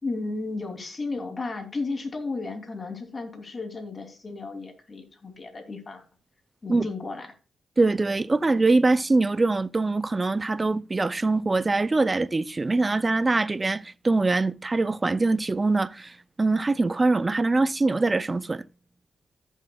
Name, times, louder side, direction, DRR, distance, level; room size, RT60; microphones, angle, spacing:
voice 1, 0.0-6.0 6.6-7.4, left 3 dB, 40° left, 2.9 m, -34 dB
voice 2, 7.8-18.6, right 3 dB, 30° right, 0.5 m, -23 dB
14.5 x 7.3 x 2.3 m
cardioid pair, 65°, 0 cm